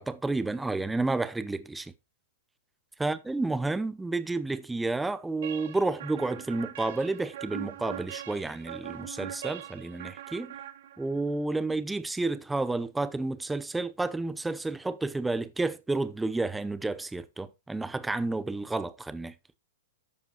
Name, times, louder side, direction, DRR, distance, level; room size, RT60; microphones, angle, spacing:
voice 1, 0.0-1.9 3.0-10.5 11.0-19.3, right 2 dB, 5° right, 0.6 m, -31 dB
sound 1, 5.4-11.3, right 11 dB, 65° right, 0.9 m, -41 dB
13.0 x 4.8 x 2.9 m
hypercardioid pair, 125°, 0 cm